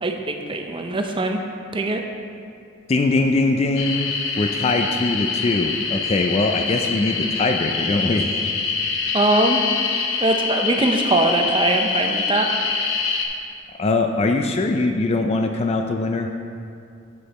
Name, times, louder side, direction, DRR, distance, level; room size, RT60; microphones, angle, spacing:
voice 1, 0.0-1.4 1.7-2.0 9.1-9.6 10.2-12.5, right 2 dB, 25° right, 4 dB, 0.5 m, -21 dB
voice 2, 2.9-8.3 13.8-16.3, left 2 dB, 30° left, 4 dB, 0.3 m, -22 dB
sound 1, 3.8-13.3, left 5 dB, 70° left, 0.9 m, -25 dB
7.7 x 6.6 x 4.1 m, 2.4 s
head